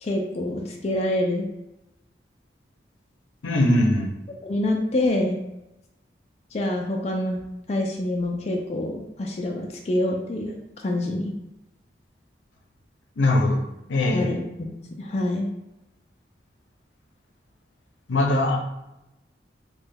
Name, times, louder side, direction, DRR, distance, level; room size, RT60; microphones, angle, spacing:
voice 1, 0.0-1.5 4.4-5.4 6.5-7.4 7.7-11.3 14.1-14.4 15.0-15.5, left 1 dB, 35° left, 1 dB, 0.3 m, -26 dB
voice 2, 3.4-4.1 13.2-13.6 13.9-14.4 18.1-18.6, left 1 dB, 90° left, 2 dB, 0.6 m, -21 dB
3.0 x 2.2 x 3.4 m, 0.90 s
head